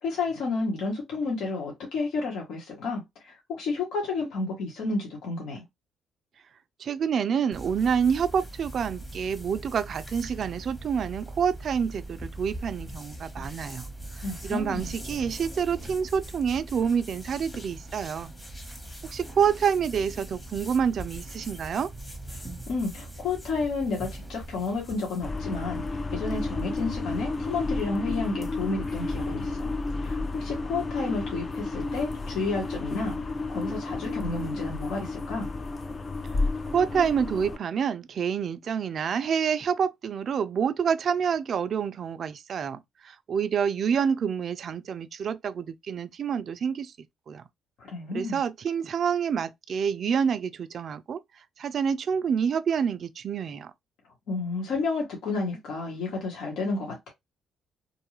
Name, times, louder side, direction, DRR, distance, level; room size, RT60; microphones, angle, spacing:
voice 1, 0.0-5.6 14.2-14.9 22.3-25.8 26.1-29.7 30.0-33.2 33.5-35.5 47.8-48.4 54.3-57.1, left 3 dB, 80° left, 1.1 m, -31 dB
voice 2, 6.8-13.9 14.4-18.3 19.0-21.9 36.7-46.9 47.3-47.4 48.1-51.2 51.6-53.7, right 7 dB, 55° right, 0.3 m, -27 dB
sound 1, 7.5-25.3, right 1 dB, 15° left, 1.0 m, -41 dB
sound 2, 25.2-37.6, left 3 dB, 35° left, 0.5 m, -32 dB
2.6 x 2.3 x 3.0 m
cardioid pair, 90°, 0 cm